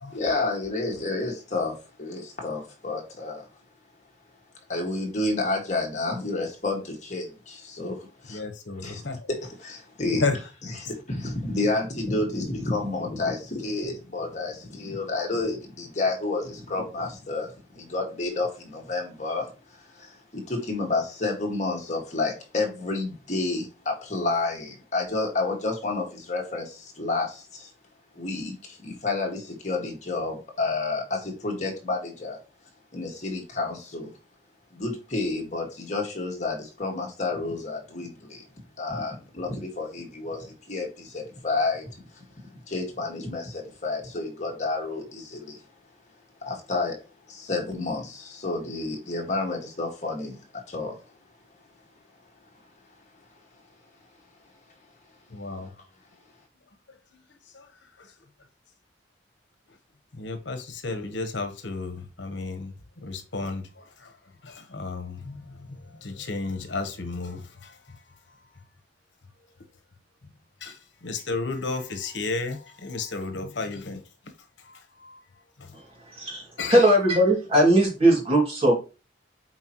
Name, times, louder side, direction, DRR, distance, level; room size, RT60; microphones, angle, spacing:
voice 1, 0.1-3.5 4.7-8.4 8.8-9.0 9.3-10.2 10.8-19.5 19.9-27.7 28.2-32.4 32.9-34.1 34.7-38.4 38.8-42.2 42.5-45.6 46.4-47.0 47.3-50.4 50.7-51.0 55.6-55.7, left 3 dB, 40° left, 1.9 m, -30 dB
voice 2, 8.3-9.3 10.1-10.4 55.3-55.7 57.5-57.7 58.0-58.1 60.1-62.7 63.0-64.1 64.4-68.0 70.6-74.0 74.6-75.2 75.6-75.7 76.6-76.9, left 3 dB, 80° left, 1.1 m, -33 dB
voice 3, 75.7-78.8, right 1 dB, 30° right, 2.4 m, -20 dB
8.2 x 4.4 x 3.0 m
head